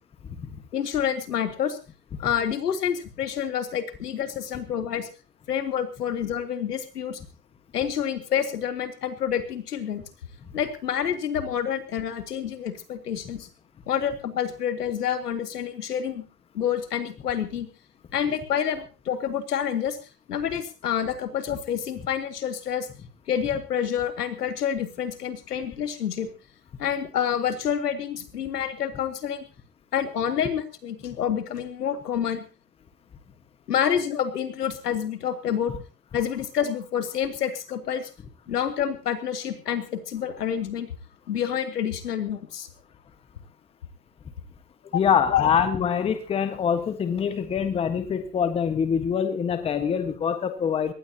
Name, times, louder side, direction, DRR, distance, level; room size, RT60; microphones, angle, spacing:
voice 1, 0.7-1.8 2.2-5.1 5.5-7.2 7.7-10.0 10.5-13.5 13.9-16.2 16.5-17.7 18.1-20.0 20.3-22.9 23.3-26.3 26.8-29.4 29.9-32.4 33.7-35.7 36.1-38.1 38.5-40.9 41.3-42.7 45.3-45.5, left 8 dB, 75° left, 7 dB, 3.5 m, -28 dB
voice 2, 44.9-50.9, left 7 dB, 10° left, 10 dB, 1.4 m, -24 dB
22.0 x 18.5 x 2.9 m, 0.33 s
hypercardioid pair, 140°, 47 cm